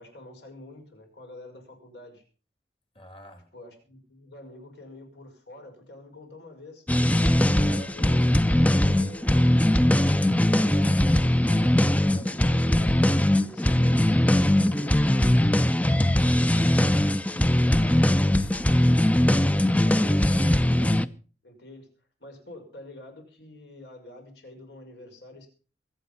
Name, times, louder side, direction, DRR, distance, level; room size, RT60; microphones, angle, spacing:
voice 1, 0.0-2.2 3.5-6.8 7.3-9.8 10.5-15.6 19.1-19.5 19.8-21.1 21.4-21.9 22.2-25.5, left 1 dB, 70° left, 5.9 m, -46 dB
voice 2, 2.9-3.5 17.4-18.9, left 1 dB, 30° left, 2.7 m, -48 dB
sound 1, 6.9-21.1, left 1 dB, 10° left, 0.6 m, -21 dB
22.5 x 8.8 x 5.5 m
head